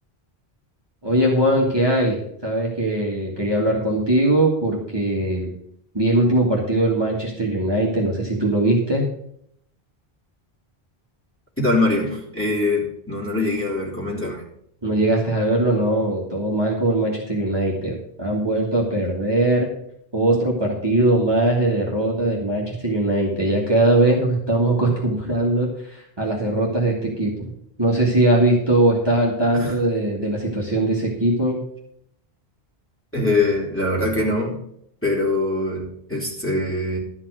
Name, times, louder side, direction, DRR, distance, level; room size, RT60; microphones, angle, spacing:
voice 1, 1.0-5.5 5.9-9.1 14.8-19.7 20.1-27.5 27.8-31.6, right 1 dB, 25° right, -3 dB, 1.9 m, -20 dB
voice 2, 11.6-14.4 29.6-29.7 33.1-34.5 35.0-37.0, left 2 dB, 10° left, -4 dB, 3.1 m, -23 dB
12.0 x 5.8 x 6.3 m, 0.71 s
omnidirectional pair, 1.1 m